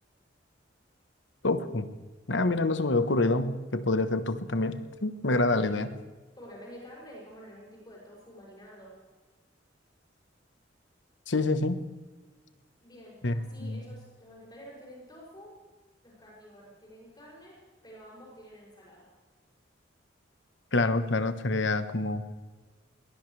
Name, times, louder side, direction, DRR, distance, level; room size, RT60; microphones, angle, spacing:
voice 1, 1.4-1.9 2.3-5.9 11.3-11.8 13.2-13.3 13.6-13.8 20.7-22.2, left 2 dB, 70° left, 10 dB, 1.2 m, -27 dB
voice 2, 6.4-9.0 12.8-15.5 16.0-17.6 17.8-19.1, equal, 25° left, -5 dB, 6.8 m, -49 dB
21.5 x 20.0 x 3.4 m, 1.3 s
head